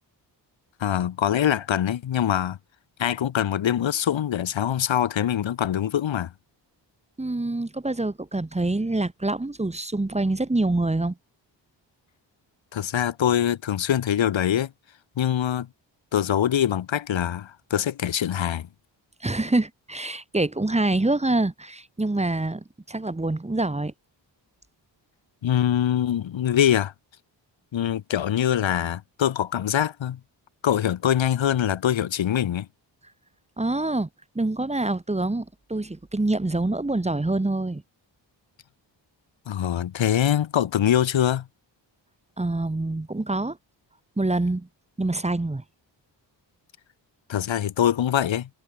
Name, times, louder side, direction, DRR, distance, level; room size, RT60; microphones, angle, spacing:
voice 1, 0.8-2.6 3.0-6.3 12.7-14.7 15.2-15.7 16.1-18.7 25.4-26.9 27.7-30.2 30.6-32.7 39.5-41.5 47.3-48.5, left 10 dB, 85° left, 2.2 m, -23 dB
voice 2, 7.2-11.2 19.2-23.9 33.6-34.1 34.4-37.8 42.4-43.6 44.2-44.7 45.0-45.6, right 2 dB, 15° right, 1.9 m, -26 dB
wide cardioid pair, 110°, 45 cm